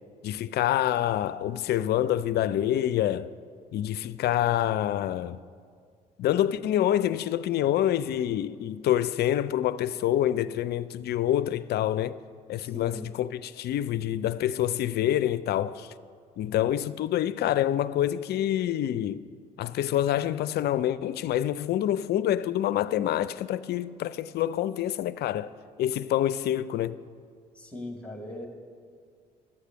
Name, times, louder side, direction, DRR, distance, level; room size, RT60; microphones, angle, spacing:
voice 1, 0.2-3.3 3.7-5.4 6.2-12.2 12.5-15.9 16.4-19.2 19.6-25.5 25.8-27.0, left 12 dB, 55° left, 0.4 m, -27 dB
voice 2, 12.6-13.1 27.5-28.5, left 1 dB, 5° left, 2.2 m, -39 dB
12.5 x 8.1 x 6.3 m
hypercardioid pair, 55°, 20 cm